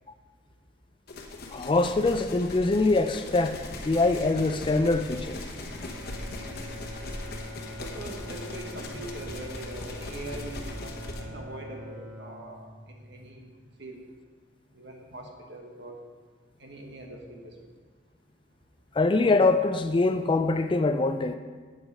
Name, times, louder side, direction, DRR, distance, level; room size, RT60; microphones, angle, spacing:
sound 1, 1.1-11.2, left 2 dB, 50° left, 1.0 m, -39 dB
voice 1, 1.5-5.4 18.9-21.4, left 3 dB, 25° left, 0.3 m, -24 dB
Bowed string instrument, 5.5-13.8, equal, ahead, 3.3 m, -44 dB
voice 2, 7.8-14.0 14.7-16.0 16.6-17.5, right 1 dB, 60° right, 1.4 m, -42 dB
8.2 x 7.9 x 5.4 m
head